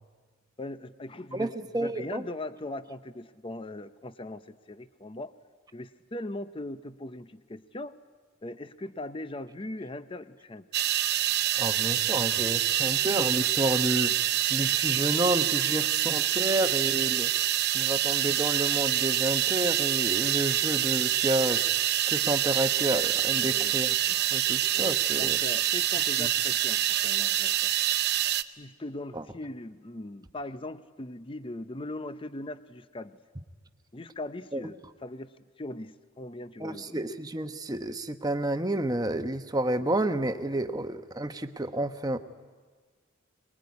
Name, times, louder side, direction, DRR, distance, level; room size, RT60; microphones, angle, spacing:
voice 1, 0.6-1.5 1.8-5.3 5.7-8.0 8.4-10.7 23.4-23.7 24.7-27.7 28.5-33.2 33.9-37.0, left 2 dB, 25° left, 12 dB, 0.7 m, -40 dB
voice 2, 1.3-2.2 11.6-14.1 14.5-17.3 17.7-21.6 22.1-24.0 24.3-25.4 26.2-26.3 29.1-29.2 34.5-34.6 36.6-42.2, right 1 dB, 20° right, 8 dB, 1.1 m, -30 dB
sound 1, 10.7-28.4, right 12 dB, 55° right, 0.7 m, -26 dB
23.0 x 21.0 x 9.6 m, 1.5 s
head